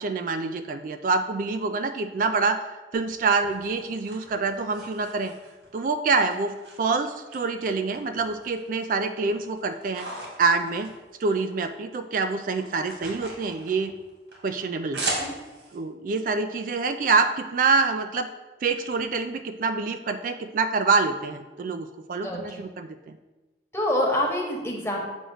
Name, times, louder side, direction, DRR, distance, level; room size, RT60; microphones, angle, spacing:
voice 1, 0.0-2.7 2.9-5.3 5.7-10.1 10.4-10.9 11.2-13.9 14.4-15.1 15.7-18.3 18.6-23.2, right 4 dB, 50° right, 8 dB, 0.3 m, -26 dB
sound 1, 2.9-5.8 6.3-7.4 7.7-8.7 9.1-11.7 12.0-15.8, right 2 dB, 85° right, 2.2 m, -38 dB
voice 2, 22.2-22.6 23.7-25.0, left 1 dB, 15° left, -1 dB, 1.1 m, -26 dB
7.8 x 3.0 x 6.2 m, 1.2 s
head